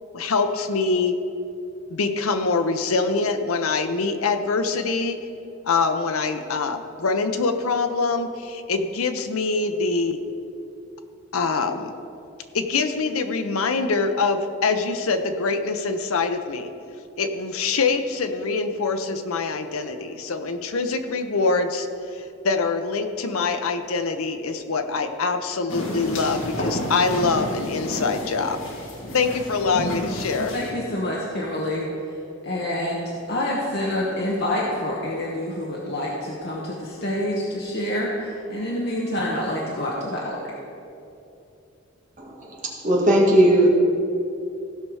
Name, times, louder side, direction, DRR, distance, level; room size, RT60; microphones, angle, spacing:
voice 1, 0.1-1.1 1.9-5.2 5.6-10.2 11.3-11.9 12.5-16.7 17.2-28.6 29.1-30.5, left 4 dB, 85° left, 7 dB, 0.7 m, -24 dB
sound 1, 25.7-30.7, left 1 dB, 65° left, 1.6 m, -31 dB
voice 2, 30.4-31.9 32.4-40.5, left 1 dB, 50° left, -4 dB, 1.1 m, -27 dB
voice 3, 42.2-43.7, right 1 dB, 35° right, -2 dB, 1.7 m, -18 dB
16.0 x 5.5 x 4.8 m, 2.7 s
head